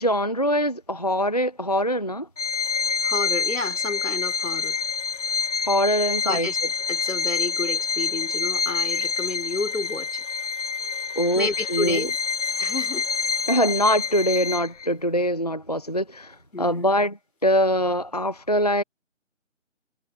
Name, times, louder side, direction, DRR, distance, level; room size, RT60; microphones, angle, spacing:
voice 1, 0.0-2.3 5.6-6.5 11.2-12.1 13.5-17.2 17.4-18.8, equal, 35° left, 0.5 m, -23 dB
Bowed string instrument, 2.4-14.9, left 5 dB, 70° left, 0.8 m, -27 dB
voice 2, 3.0-4.8 6.3-6.6 6.9-10.2 11.4-12.1 12.6-13.1 16.5-16.9, left 3 dB, 90° left, 4.2 m, -30 dB
figure-of-eight pair, 170°, 38 cm